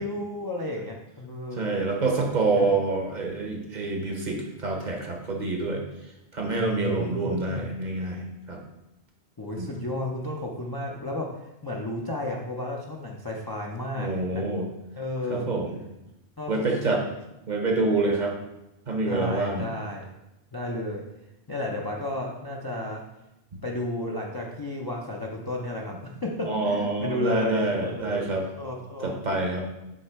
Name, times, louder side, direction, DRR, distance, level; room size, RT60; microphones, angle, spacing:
voice 1, 0.0-1.7 2.4-2.7 6.6-7.7 9.4-14.6 15.0-15.5 16.4-17.0 19.1-20.0 20.5-21.0 21.5-23.0 23.6-29.2, left 1 dB, 30° left, -1 dB, 0.4 m, -33 dB
voice 2, 1.6-5.8 6.3-8.6 9.5-9.7 14.0-14.7 15.3-15.7 16.5-17.0 17.5-18.3 18.9-19.7 23.5-23.6 26.5-28.5 29.0-29.7, right 3 dB, 45° right, 1 dB, 0.8 m, -27 dB
6.5 x 3.2 x 4.5 m, 0.92 s
omnidirectional pair, 1.1 m